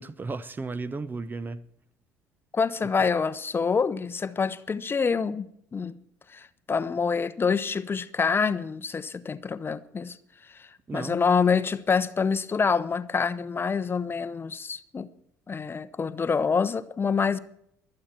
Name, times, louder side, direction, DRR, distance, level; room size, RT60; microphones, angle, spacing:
voice 1, 0.0-1.7 10.9-11.2, right 3 dB, 25° right, 0.8 m, -34 dB
voice 2, 2.5-5.9 6.3-10.2 10.4-15.1 15.5-17.4, left 5 dB, 25° left, 0.9 m, -26 dB
23.5 x 8.7 x 4.5 m
figure-of-eight pair, 55°, 8 cm